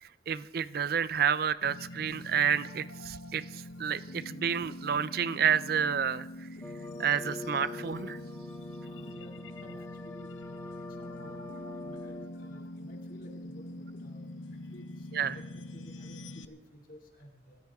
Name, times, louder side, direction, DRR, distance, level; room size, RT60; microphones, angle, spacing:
voice 1, 0.0-6.5 7.0-8.2 15.1-15.4, right 7 dB, 50° right, 16 dB, 0.4 m, -30 dB
sound 1, 1.6-16.4, left 1 dB, 85° left, 0.8 m, -44 dB
sound 2, 6.6-12.3, left 2 dB, 10° left, 1.3 m, -44 dB
voice 2, 8.8-17.6, equal, 45° left, 1 dB, 2.3 m, -54 dB
26.0 x 13.5 x 3.5 m, 1.1 s
head